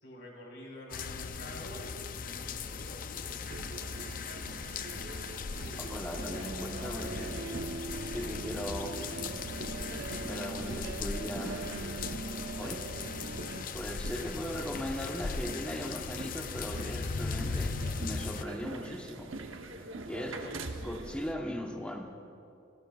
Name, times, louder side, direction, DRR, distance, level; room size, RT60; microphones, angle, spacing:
voice 1, 0.0-4.1 4.4-5.2 5.6-5.8 20.0-20.5, equal, 85° left, -2 dB, 3.9 m, -49 dB
sound 1, 0.9-18.4, left 5 dB, 45° left, 0.5 m, -38 dB
sound 2, 3.5-21.3, right 2 dB, 90° right, 1.0 m, -44 dB
voice 2, 5.8-7.4 8.1-9.1 10.2-11.7 12.6-12.9 13.7-19.4 20.1-20.4 20.8-22.2, equal, 5° left, 2 dB, 1.0 m, -38 dB
sound 3, 6.2-13.6, right 3 dB, 55° right, 0.5 m, -42 dB
26.0 x 17.0 x 2.4 m, 2.7 s
head